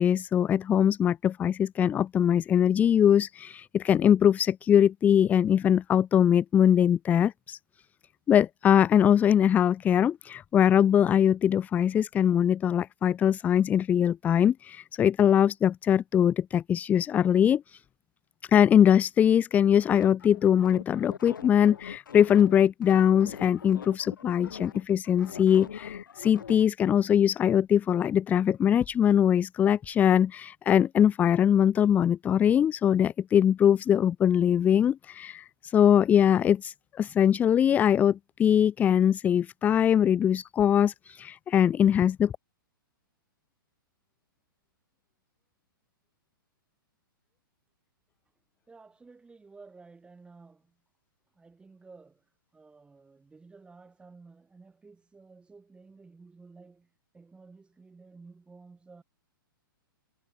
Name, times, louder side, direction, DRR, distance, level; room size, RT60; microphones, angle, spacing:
voice 1, 0.0-7.6 8.3-17.8 18.5-42.3, left 9 dB, 15° left, 0.4 m, -22 dB
sound 1, 19.9-26.6, left 7 dB, 65° left, 6.9 m, -42 dB
voice 2, 48.7-50.8 51.3-52.3 52.5-59.0, right 4 dB, 10° right, 5.9 m, -53 dB
figure-of-eight pair, 110°, 12 cm